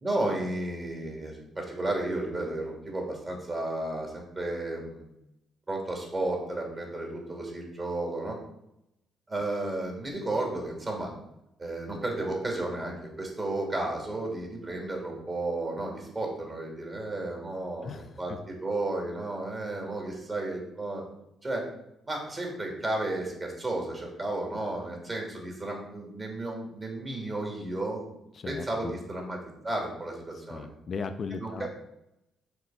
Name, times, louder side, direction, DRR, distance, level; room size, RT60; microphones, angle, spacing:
voice 1, 0.0-5.0 5.7-8.4 9.3-11.1 11.6-17.9 18.2-21.0 21.4-21.7 22.1-28.0 28.5-29.4 29.6-30.7 31.4-31.7, right 2 dB, 30° right, 0 dB, 2.8 m, -33 dB
voice 2, 17.8-18.4 28.3-29.0 30.5-31.7, left 5 dB, 45° left, 8 dB, 0.5 m, -37 dB
6.6 x 4.5 x 5.7 m, 0.84 s
cardioid pair, 90°, 0 cm